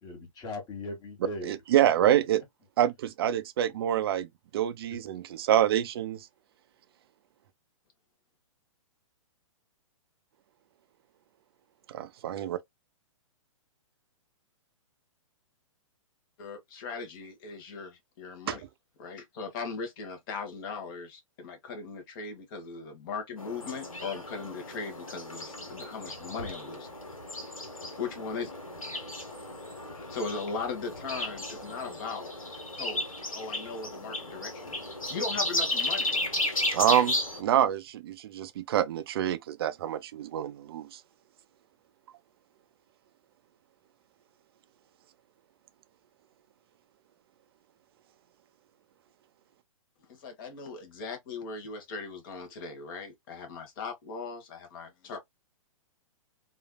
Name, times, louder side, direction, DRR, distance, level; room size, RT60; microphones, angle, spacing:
voice 1, 0.0-1.6, left 2 dB, 25° left, 1.4 m, -39 dB
voice 2, 1.4-2.4 2.8-4.3 4.5-6.3 11.9-12.6 18.5-18.6 36.7-41.0, right 11 dB, 45° right, 0.4 m, -26 dB
voice 3, 16.4-18.6 19.0-26.9 28.0-28.6 30.0-32.3 32.8-33.0 33.4-36.1 50.1-55.2, left 4 dB, 40° left, 1.1 m, -38 dB
sound 1, 23.4-37.4, left 1 dB, 85° left, 1.2 m, -34 dB
3.2 x 2.5 x 2.2 m
figure-of-eight pair, 115°, 17 cm